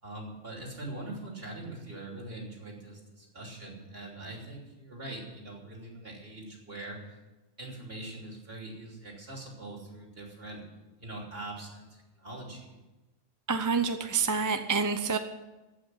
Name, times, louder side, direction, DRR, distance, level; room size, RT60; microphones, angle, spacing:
voice 1, 0.0-7.2 7.6-10.6 11.0-12.7, right 2 dB, 60° right, -1 dB, 3.4 m, -42 dB
voice 2, 13.5-15.2, right 5 dB, 20° right, 8 dB, 0.6 m, -27 dB
15.0 x 6.0 x 9.9 m, 1.1 s
omnidirectional pair, 1.1 m